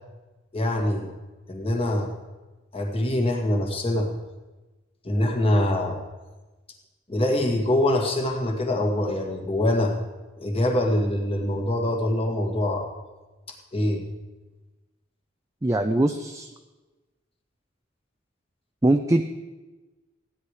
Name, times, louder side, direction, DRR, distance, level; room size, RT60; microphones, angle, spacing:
voice 1, 0.5-1.1 1.5-2.1 2.7-4.1 5.0-6.0 7.1-9.9 10.4-12.9 13.7-14.0, left 1 dB, 30° left, 2 dB, 2.1 m, -24 dB
voice 2, 15.6-16.5 18.8-19.2, right 1 dB, 15° right, 5 dB, 0.5 m, -21 dB
15.5 x 10.0 x 4.8 m, 1.2 s
head